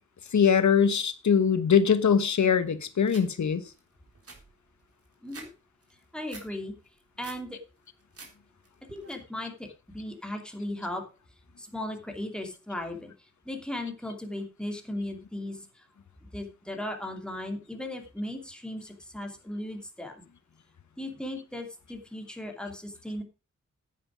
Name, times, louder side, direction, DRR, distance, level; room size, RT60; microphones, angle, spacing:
voice 1, 0.3-3.6, left 7 dB, 75° left, 1.3 m, -22 dB
sound 1, 3.1-3.3 3.7-3.8 4.1-5.5 5.8-6.5 6.9-7.4 7.9-8.3 8.6-9.1, right 3 dB, 50° right, 3.6 m, -47 dB
voice 2, 6.1-6.7 7.2-7.6 8.9-9.7 9.9-11.0 11.6-15.9 16.3-20.2 21.0-23.2, left 1 dB, 5° left, 2.8 m, -37 dB
9.8 x 9.8 x 5.1 m
wide cardioid pair, 105°, 29 cm